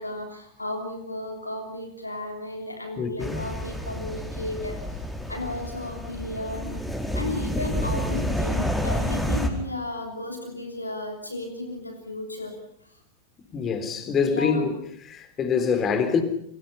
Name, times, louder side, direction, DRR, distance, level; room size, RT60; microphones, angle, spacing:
voice 1, 0.0-5.0 5.3-6.8 7.1-12.6 12.8-13.0 14.2-14.7, left 2 dB, 85° left, 3.2 m, -34 dB
voice 2, 3.0-3.4 13.5-14.8 15.0-16.2, left 6 dB, 25° left, 3.9 m, -25 dB
sound 1, 3.2-9.5, equal, 5° left, 4.5 m, -29 dB
29.5 x 23.5 x 5.7 m
figure-of-eight pair, 90°, 0 cm